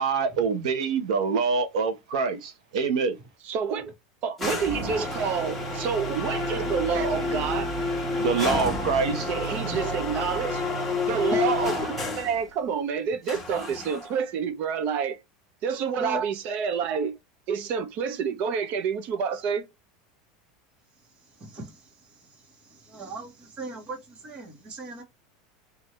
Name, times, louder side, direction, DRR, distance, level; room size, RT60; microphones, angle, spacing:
voice 1, 0.0-3.2 8.2-9.3, right 5 dB, 90° right, 1.0 m, -25 dB
voice 2, 3.4-3.9 4.2-7.7 9.3-10.6 11.1-15.2 15.6-17.2 17.5-19.7, right 6 dB, 45° right, 0.7 m, -28 dB
sound 1, 4.4-12.4 13.3-14.2, left 2 dB, 5° left, 1.3 m, -29 dB
voice 3, 21.4-21.7 22.9-25.0, right 2 dB, 30° right, 1.4 m, -38 dB
4.4 x 2.7 x 3.2 m
supercardioid pair, 150°, 4 cm